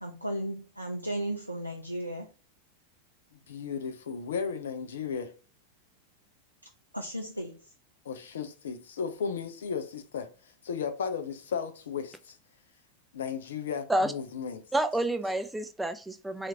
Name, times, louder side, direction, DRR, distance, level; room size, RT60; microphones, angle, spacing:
voice 1, 0.0-2.3 6.9-7.7, right 1 dB, 90° right, 0.3 m, -35 dB
voice 2, 3.3-5.3 8.0-12.4 13.1-14.6, left 6 dB, 65° left, 0.4 m, -35 dB
voice 3, 14.7-16.5, right 1 dB, 5° right, 0.3 m, -29 dB
2.8 x 2.4 x 2.7 m
figure-of-eight pair, 90°, 0 cm